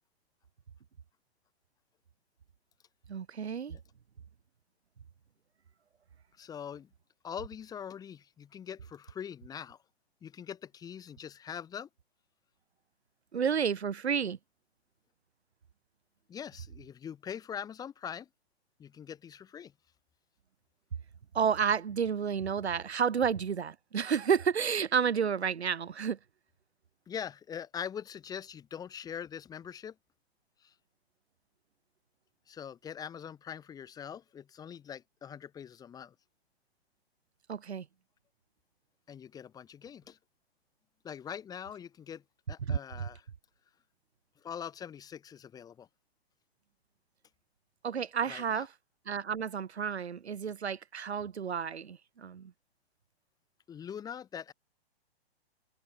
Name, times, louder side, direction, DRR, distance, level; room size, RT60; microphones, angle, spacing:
voice 1, 3.1-3.7 13.3-14.4 21.3-26.2 37.5-37.9 42.6-43.1 47.8-48.7 49.1-52.5, right 7 dB, 90° right, 1.7 m, -31 dB
voice 2, 6.4-6.9 7.2-9.8 10.2-11.9 16.3-18.3 18.8-19.7 27.1-30.0 30.6-30.7 32.5-36.1 39.1-40.2 41.0-42.2 42.5-43.3 44.4-45.9 48.3-48.7 53.7-54.5, left 8 dB, 10° left, 0.9 m, -43 dB
hypercardioid pair, 140°, 32 cm